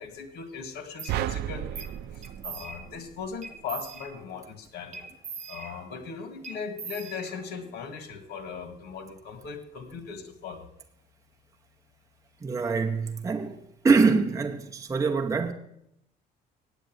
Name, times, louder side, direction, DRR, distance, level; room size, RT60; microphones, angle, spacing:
voice 1, 0.0-1.9 2.1-5.1 5.5-10.7, left 5 dB, 75° left, 1.9 m, -39 dB
sound 1, 1.0-1.2 1.8-2.0 2.2-3.0 3.4-4.4 4.9-6.1 6.4-7.7, right 5 dB, 45° right, 1.5 m, -41 dB
sound 2, 1.1-3.5, right 13 dB, 75° right, 0.5 m, -33 dB
voice 2, 12.4-13.6 13.8-15.5, right 4 dB, 20° right, 0.9 m, -24 dB
9.0 x 8.2 x 9.1 m
cardioid pair, 110°, 17 cm